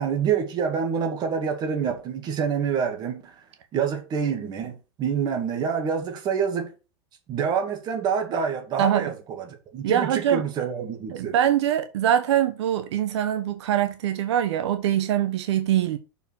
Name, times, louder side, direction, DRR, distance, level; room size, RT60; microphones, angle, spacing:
voice 1, 0.0-3.3 3.7-6.7 7.3-11.4, right 7 dB, 30° right, 2.2 m, -27 dB
voice 2, 8.8-9.1 9.8-10.4 11.1-16.0, right 10 dB, 75° right, 1.1 m, -23 dB
6.8 x 4.9 x 6.4 m
supercardioid pair, 150°, 15 cm